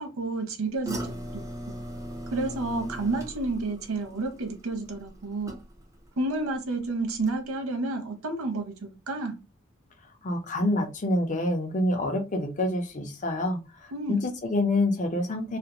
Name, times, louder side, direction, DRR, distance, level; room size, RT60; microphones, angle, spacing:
voice 1, 0.0-1.8 2.3-5.6 6.2-9.4 13.9-14.3, right 2 dB, 85° right, 0.6 m, -31 dB
sound 1, 0.8-6.1 6.4-6.8 7.2-7.3, right 1 dB, 15° right, 0.5 m, -39 dB
voice 2, 10.2-15.6, left 1 dB, 35° left, 0.5 m, -27 dB
2.5 x 2.1 x 2.8 m
head